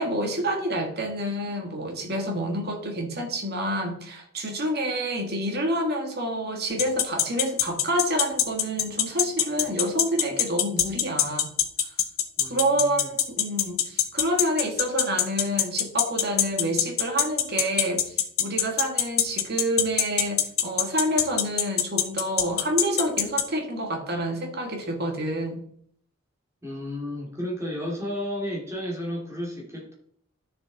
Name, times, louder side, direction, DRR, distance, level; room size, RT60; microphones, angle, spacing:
voice 1, 0.0-11.5 12.5-25.6, right 1 dB, 50° right, 1.9 m, -28 dB
sound 1, 6.8-23.4, left 11 dB, 85° left, 1.1 m, -21 dB
voice 2, 12.4-13.1 26.6-29.9, left 1 dB, 15° right, 2.5 m, -33 dB
11.5 x 6.9 x 4.0 m
head